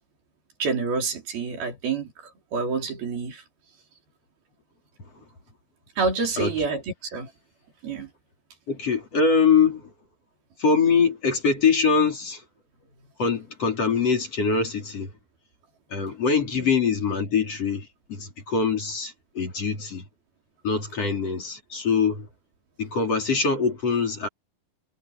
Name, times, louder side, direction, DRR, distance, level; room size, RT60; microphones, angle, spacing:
voice 1, 0.6-3.4 6.0-7.3 7.8-8.1 16.5-16.7, right 4 dB, 75° right, 6.3 m, -28 dB
voice 2, 8.7-9.9 10.6-12.4 13.2-15.1 15.9-20.0 20.6-22.3 22.8-24.3, left 5 dB, 40° left, 4.8 m, -23 dB
omnidirectional pair, 4.3 m